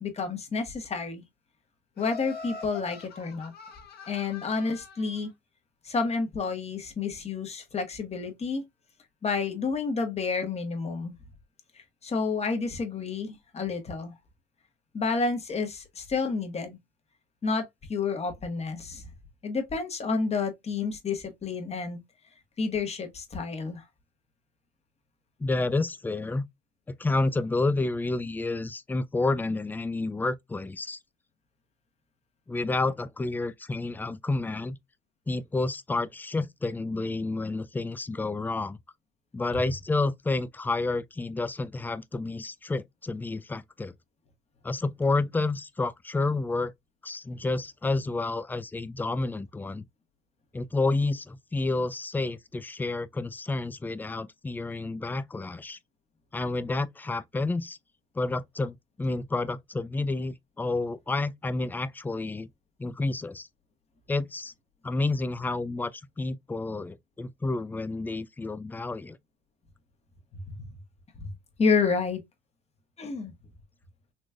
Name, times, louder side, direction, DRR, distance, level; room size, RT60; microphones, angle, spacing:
voice 1, 0.0-1.2 2.0-3.5 4.1-5.3 5.8-8.6 9.2-11.1 12.0-14.1 14.9-16.8 17.4-17.6 17.9-19.0 19.4-22.0 22.6-23.8 71.2-71.3 71.6-72.2 73.0-73.3, left 4 dB, 30° left, 1.4 m, -29 dB
Laughter, 2.0-5.2, left 5 dB, 50° left, 1.3 m, -43 dB
voice 2, 25.4-26.5 26.9-31.0 32.5-34.8 35.3-38.8 39.3-43.9 44.6-46.7 47.0-49.8 50.5-55.8 56.3-57.8 58.2-62.5 62.8-63.5 64.1-64.5 64.8-69.2, left 3 dB, 10° left, 0.3 m, -30 dB
4.2 x 3.0 x 2.3 m
supercardioid pair, 90°, 21 cm